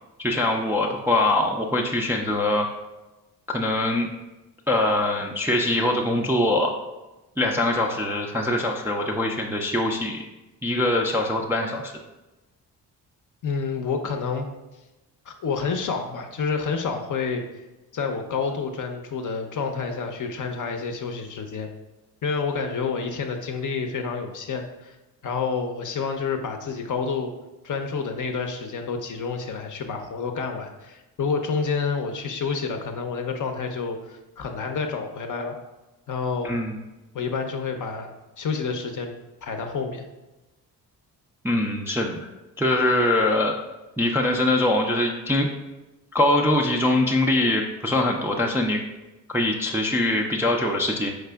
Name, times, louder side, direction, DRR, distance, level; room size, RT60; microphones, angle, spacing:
voice 1, 0.2-2.7 3.5-4.1 4.7-6.7 7.4-10.2 10.6-11.9 36.4-36.8 41.4-42.2 42.6-43.6 44.0-45.5 46.1-48.8 49.3-51.1, left 1 dB, 5° right, 0 dB, 0.3 m, -23 dB
voice 2, 13.4-14.5 15.3-17.6 17.9-21.7 22.2-25.0 25.2-27.3 27.6-35.5 36.1-36.6 37.1-38.1 38.4-39.1 39.4-40.1, left 5 dB, 45° left, 5 dB, 0.6 m, -29 dB
4.8 x 3.2 x 2.2 m, 1.1 s
hypercardioid pair, 40°, 45 cm